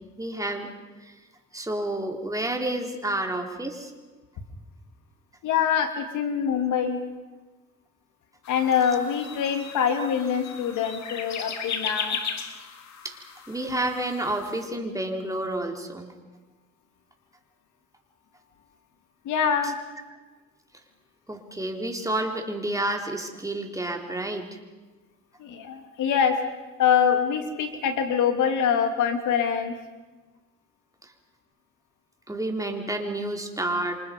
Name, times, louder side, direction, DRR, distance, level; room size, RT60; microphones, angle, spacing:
voice 1, 0.2-0.7 1.0-1.2 1.5-3.9 13.0-16.1 21.3-24.5 31.0-31.1 32.3-34.0, right 1 dB, 10° right, 2 dB, 3.8 m, -30 dB
voice 2, 5.4-7.0 8.5-12.2 19.2-19.8 25.4-26.4 26.8-29.8, left 7 dB, 85° left, 6 dB, 2.8 m, -24 dB
sound 1, 8.4-14.6, left 6 dB, 65° left, 2.4 m, -36 dB
27.0 x 26.5 x 5.3 m, 1.2 s
cardioid pair, 90°, 30 cm